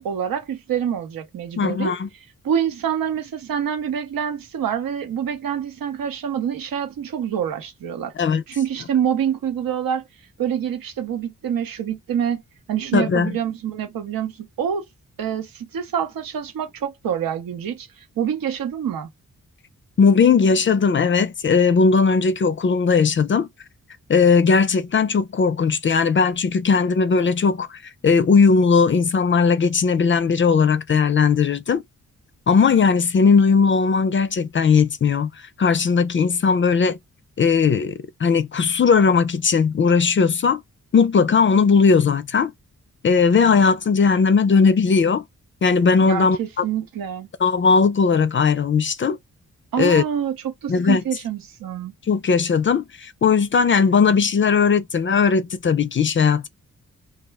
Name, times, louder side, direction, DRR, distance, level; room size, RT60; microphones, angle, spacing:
voice 1, 0.0-2.0 2.4-8.1 8.5-10.0 10.4-12.4 12.7-14.9 15.2-17.9 18.2-19.1 46.0-47.3 49.7-51.9, right 8 dB, 90° right, 0.8 m, -26 dB
voice 2, 1.6-2.1 8.2-8.4 12.9-13.3 20.0-23.5 24.1-27.7 28.0-31.8 32.5-35.3 35.6-37.0 37.4-40.6 40.9-42.5 43.0-45.2 45.6-46.4 47.4-49.2 49.8-50.0 50.7-51.0 52.1-56.5, left 5 dB, 35° left, 0.4 m, -18 dB
2.3 x 2.1 x 3.3 m
cardioid pair, 55°, 34 cm